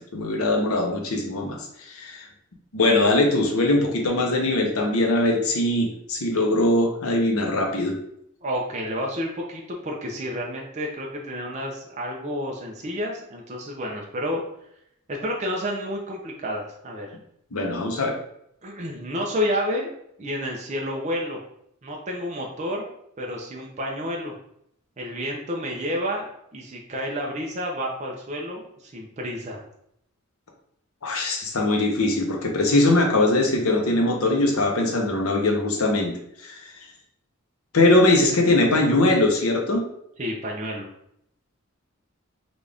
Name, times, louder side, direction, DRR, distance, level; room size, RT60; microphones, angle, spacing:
voice 1, 0.1-2.3 2.7-7.9 17.5-18.1 31.0-36.1 36.4-36.7 37.7-39.8, left 2 dB, 85° left, 1 dB, 0.8 m, -21 dB
voice 2, 8.4-14.4 15.1-17.1 18.6-19.9 20.2-21.4 21.8-22.9 23.2-24.3 25.0-29.6 33.9-34.0 40.2-40.9, equal, 35° right, -1 dB, 0.5 m, -30 dB
3.9 x 2.4 x 3.3 m, 0.73 s
head